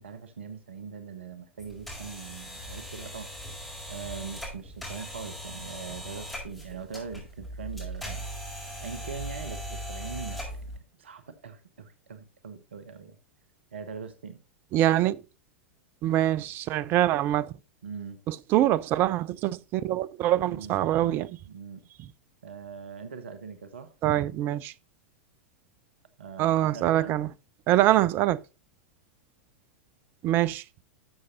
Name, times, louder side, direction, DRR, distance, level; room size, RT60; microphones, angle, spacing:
voice 1, 0.0-3.3 3.9-8.3 8.5-13.2 13.7-14.4 17.8-18.2 20.4-21.8 22.4-23.9 26.2-27.2, right 6 dB, 65° right, 0.9 m, -41 dB
sound 1, 1.6-10.8, equal, ahead, 5.0 m, -39 dB
voice 2, 14.7-15.2 16.0-17.5 18.3-21.3 24.0-24.7 26.4-27.3 27.7-28.4 30.2-30.6, right 13 dB, 35° right, 0.4 m, -24 dB
12.5 x 6.4 x 2.7 m
figure-of-eight pair, 90°, 7 cm